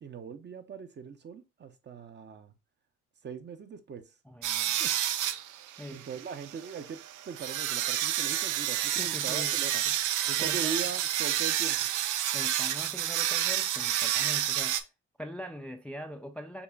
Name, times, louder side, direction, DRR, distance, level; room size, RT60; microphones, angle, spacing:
voice 1, 0.0-2.5 3.2-4.0 4.6-4.9 5.9-7.0 7.2-9.8 10.2-11.9, right 6 dB, 35° right, 0.6 m, -40 dB
voice 2, 4.2-4.8 5.8-6.1 8.9-9.6 9.8-9.9 10.4-10.9 12.3-14.9 15.2-16.6, equal, 5° left, 0.4 m, -42 dB
sound 1, 4.4-14.8, right 12 dB, 85° right, 0.5 m, -30 dB
6.8 x 2.5 x 2.3 m
cardioid pair, 90°, 30 cm